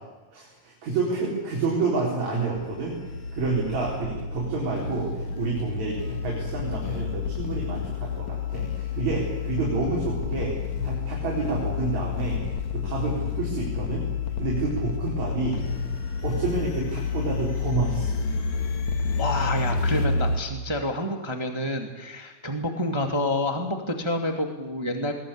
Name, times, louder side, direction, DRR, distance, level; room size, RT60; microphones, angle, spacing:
voice 1, 0.3-3.0 3.3-10.6 10.8-12.4 12.7-14.1 14.4-15.6 16.2-18.1, right 4 dB, 55° right, -4 dB, 5.6 m, -29 dB
sound 1, 2.6-20.4, left 5 dB, 60° left, 2.9 m, -30 dB
voice 2, 19.1-25.1, left 1 dB, 15° right, 4 dB, 1.2 m, -28 dB
22.0 x 19.5 x 8.6 m, 1.2 s
omnidirectional pair, 4.0 m